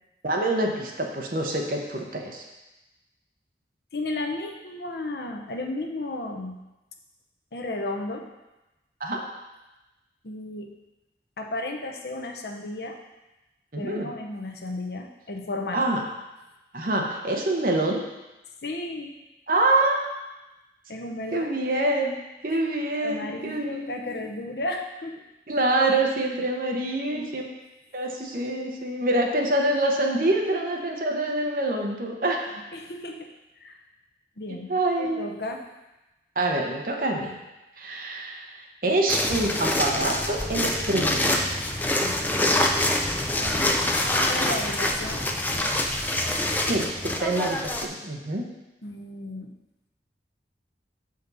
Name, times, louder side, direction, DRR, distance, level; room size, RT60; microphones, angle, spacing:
voice 1, 0.2-2.4 9.0-9.2 13.7-14.1 15.7-16.0 16.7-18.0 19.5-20.1 21.3-24.2 25.5-27.4 27.9-32.5 34.7-35.3 36.4-37.4 37.8-41.4 46.7-48.5, right 2 dB, 50° right, 1 dB, 0.9 m, -26 dB
voice 2, 3.9-6.6 7.5-8.2 10.2-10.7 11.4-13.0 13.8-15.8 18.6-19.2 20.9-21.5 22.5-22.6 23.0-25.2 27.0-27.3 32.7-33.3 33.6-33.8 34.4-34.7 35.0-35.6 42.0-42.4 43.4-43.7 44.1-45.3 48.8-49.5, left 2 dB, 65° left, 2 dB, 0.8 m, -34 dB
sound 1, 39.1-47.9, left 1 dB, 10° left, 0.4 m, -25 dB
6.9 x 5.1 x 4.0 m, 1.0 s
head